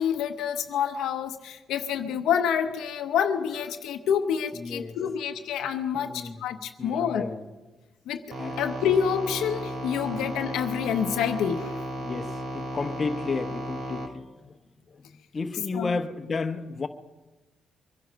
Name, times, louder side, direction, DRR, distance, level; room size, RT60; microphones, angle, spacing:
voice 1, 0.0-7.3 8.1-8.2 8.6-11.8 15.7-15.9, left 8 dB, 85° left, 0.8 m, -27 dB
voice 2, 4.5-5.0 5.9-6.4 6.8-7.4 8.4-8.6 10.0-10.2 12.0-14.6 14.9-16.9, left 4 dB, 35° left, 1.0 m, -33 dB
sound 1, 8.3-14.1, right 1 dB, 55° right, 1.8 m, -34 dB
23.5 x 10.5 x 5.2 m
cardioid pair, 90°, 0 cm